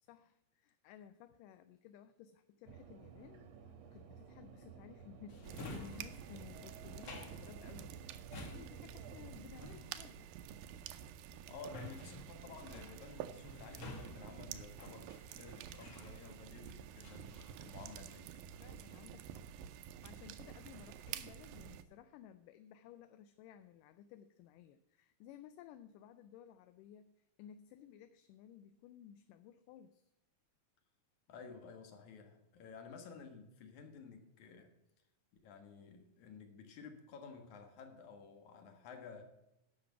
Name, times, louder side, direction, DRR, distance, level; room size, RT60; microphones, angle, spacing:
voice 1, 0.0-10.3 18.6-19.5 19.7-30.1, left 9 dB, 80° left, 11 dB, 2.1 m, -57 dB
sound 1, 2.7-9.4, right 6 dB, 65° right, 1.9 m, -55 dB
Drawer open or close, 5.3-16.6 17.0-18.3 18.6-19.1, left 2 dB, 45° left, 2.1 m, -53 dB
sound 2, 5.4-21.8, right 10 dB, 90° right, 2.4 m, -50 dB
voice 2, 11.5-18.3 31.3-34.7 35.4-39.2, left 5 dB, 60° left, 6 dB, 2.7 m, -53 dB
11.0 x 6.7 x 6.8 m, 0.89 s
omnidirectional pair, 4.0 m